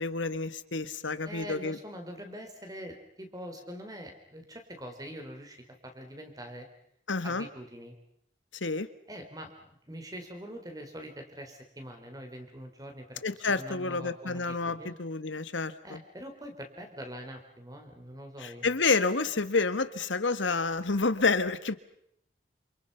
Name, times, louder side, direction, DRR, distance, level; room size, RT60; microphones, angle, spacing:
voice 1, 0.0-1.8 7.1-7.5 8.6-8.9 13.2-16.0 18.4-21.8, left 4 dB, 90° left, 12 dB, 1.5 m, -29 dB
voice 2, 1.2-6.7 7.2-7.9 9.1-13.2 13.6-14.9 15.8-18.7, equal, 20° right, 4 dB, 4.1 m, -44 dB
28.0 x 28.0 x 5.7 m, 0.72 s
head